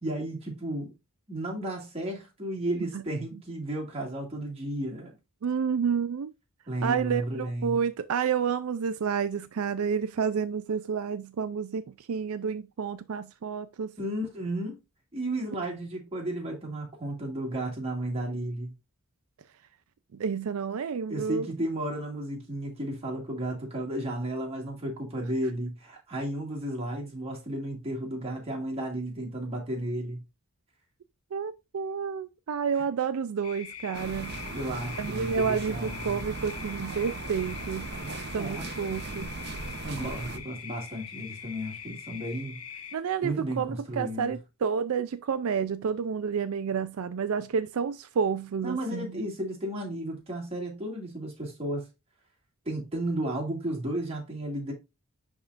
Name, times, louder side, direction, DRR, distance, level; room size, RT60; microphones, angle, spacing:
voice 1, 0.0-0.9 1.3-5.1 6.7-7.8 14.0-14.8 15.1-18.7 21.1-30.2 32.7-32.9 34.5-36.2 38.3-38.7 39.8-42.6 43.2-44.4 48.6-51.9 52.7-54.7, right 1 dB, 25° right, 2.1 m, -33 dB
voice 2, 5.4-6.3 6.8-11.8 12.1-13.9 20.2-21.5 31.3-34.4 35.0-37.9 38.3-39.3 42.9-49.1, right 6 dB, 75° right, 0.4 m, -30 dB
sound 1, 33.4-43.0, left 7 dB, 85° left, 1.2 m, -43 dB
sound 2, 33.9-40.4, right 3 dB, 50° right, 0.7 m, -38 dB
10.5 x 3.6 x 2.5 m
head